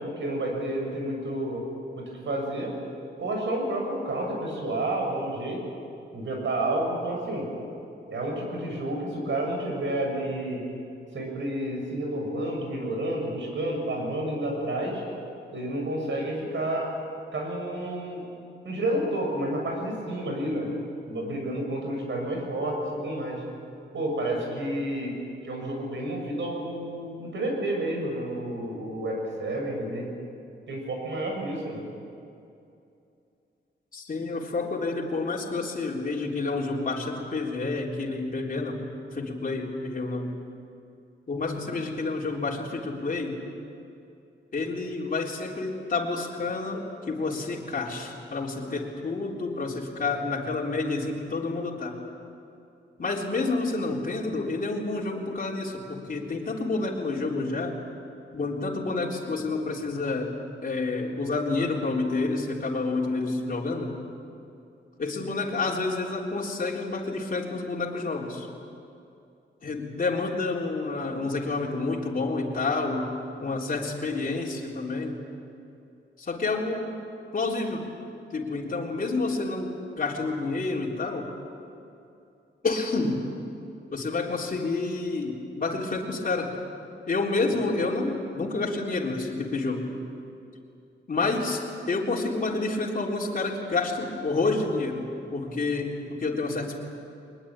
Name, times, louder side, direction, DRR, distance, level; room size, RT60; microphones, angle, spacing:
voice 1, 0.0-1.6 2.0-2.7 3.2-5.6 6.1-7.5 8.1-10.6 11.1-15.0 15.5-16.9 17.3-18.2 18.6-20.7 21.1-23.4 23.9-25.2 25.4-30.1 30.7-31.8, right 1 dB, 75° right, 1 dB, 6.9 m, -30 dB
voice 2, 33.9-38.9 39.1-40.4 41.3-43.4 44.5-51.9 53.0-57.8 58.3-60.4 60.6-63.9 65.0-68.5 69.6-73.1 73.4-75.2 76.2-77.0 77.3-77.9 78.3-81.3 82.6-83.3 83.9-86.6 87.1-89.9 91.1-95.1 95.3-96.8, left 3 dB, 45° left, -3 dB, 3.6 m, -29 dB
23.0 x 21.0 x 8.9 m, 2.6 s
wide cardioid pair, 100°, 20 cm